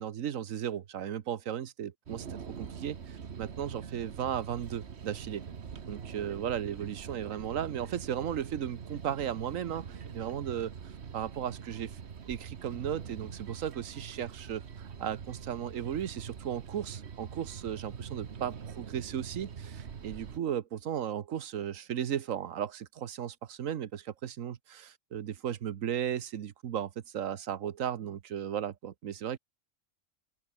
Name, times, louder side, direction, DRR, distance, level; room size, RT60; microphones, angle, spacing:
voice 1, 0.0-5.4 5.9-10.7 11.1-11.9 12.3-29.4, right 9 dB, 85° right, 1.4 m, -35 dB
sound 1, 2.1-20.4, right 7 dB, 55° right, 1.4 m, -44 dB
open air
omnidirectional pair, 1.3 m